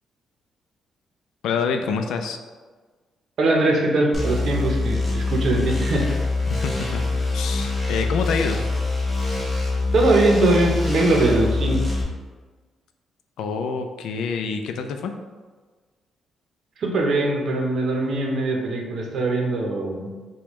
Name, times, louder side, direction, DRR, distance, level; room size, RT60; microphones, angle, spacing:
voice 1, 1.4-2.4 6.5-7.0 7.3-8.6 13.4-15.1, left 5 dB, 90° left, 6 dB, 0.4 m, -26 dB
voice 2, 3.4-6.1 9.9-11.8 16.8-20.1, right 2 dB, 50° right, 0 dB, 0.7 m, -21 dB
sound 1, 4.1-12.0, left 3 dB, 15° left, 0.7 m, -24 dB
5.1 x 2.2 x 3.0 m, 1.4 s
cardioid pair, 170°, 0 cm